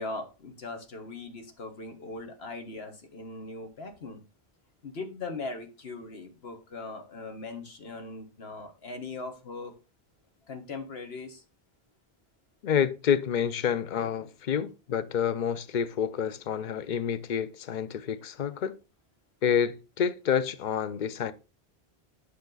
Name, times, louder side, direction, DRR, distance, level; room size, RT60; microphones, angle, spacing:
voice 1, 0.0-4.2 4.8-9.7 10.5-11.4, left 3 dB, 80° left, 1.7 m, -40 dB
voice 2, 12.6-18.7 19.4-21.3, left 8 dB, 55° left, 0.7 m, -28 dB
8.5 x 6.0 x 3.9 m
omnidirectional pair, 1.0 m